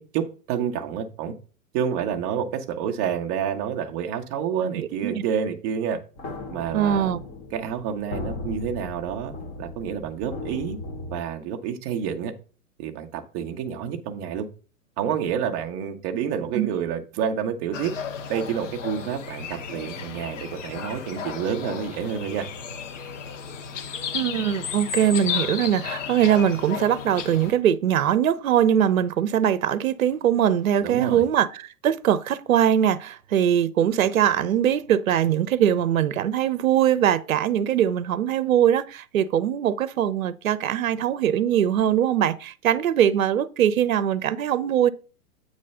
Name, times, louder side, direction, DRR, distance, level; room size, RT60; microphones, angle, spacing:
voice 1, 0.1-1.3 1.7-6.0 6.5-7.1 7.5-10.8 11.1-12.3 12.8-14.5 15.0-17.9 18.3-22.5 30.8-31.2, right 8 dB, 15° right, 0.5 m, -28 dB
voice 2, 4.6-5.2 6.7-7.2 16.5-16.7 24.1-44.9, right 10 dB, 65° right, 0.7 m, -22 dB
sound 1, 6.2-11.2, left 3 dB, 20° left, 0.8 m, -36 dB
sound 2, 17.7-27.5, left 7 dB, 50° left, 0.9 m, -33 dB
8.3 x 3.2 x 5.4 m
figure-of-eight pair, 115°, 46 cm